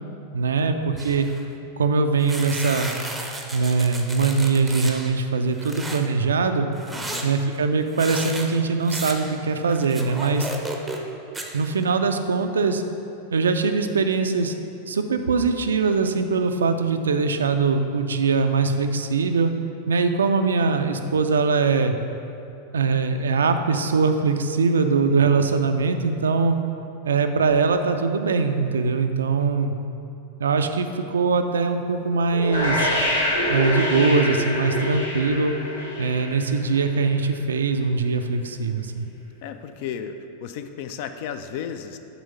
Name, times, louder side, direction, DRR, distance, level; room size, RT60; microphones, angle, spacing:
voice 1, 0.3-1.3 1.8-2.9 3.5-6.7 7.2-10.5 11.5-12.8 13.3-14.5 14.9-19.5 19.9-21.9 22.7-26.6 27.0-29.7 30.4-32.9 33.5-35.5 36.0-39.1, right 4 dB, 70° right, 7 dB, 0.3 m, -22 dB
sound 1, 1.0-1.4 2.2-5.1 5.5-6.0 6.7-11.1 11.3-11.9, right 2 dB, 10° right, 0.6 m, -34 dB
voice 2, 6.9-7.3 25.1-25.5 39.4-42.0, left 8 dB, 50° left, 9 dB, 0.3 m, -34 dB
sound 2, 32.3-37.2, left 1 dB, 75° left, 1.2 m, -25 dB
6.9 x 3.1 x 5.4 m, 2.8 s
figure-of-eight pair, 90°, 0 cm